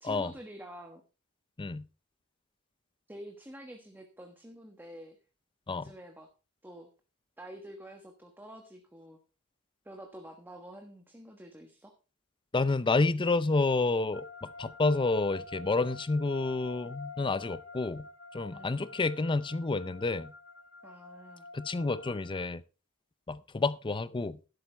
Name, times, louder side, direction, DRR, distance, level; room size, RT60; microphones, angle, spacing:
voice 1, 0.0-1.0 3.1-5.2 5.7-6.3 6.6-6.9 7.4-9.2 9.8-11.9 18.5-18.7 20.8-21.5, equal, 10° right, 1.3 m, -48 dB
voice 2, 12.5-18.0 18.3-20.3 21.5-22.6 23.3-24.4, left 3 dB, 20° left, 0.5 m, -29 dB
sound 1, 14.1-22.5, left 3 dB, 65° left, 2.4 m, -48 dB
12.0 x 12.0 x 3.4 m
head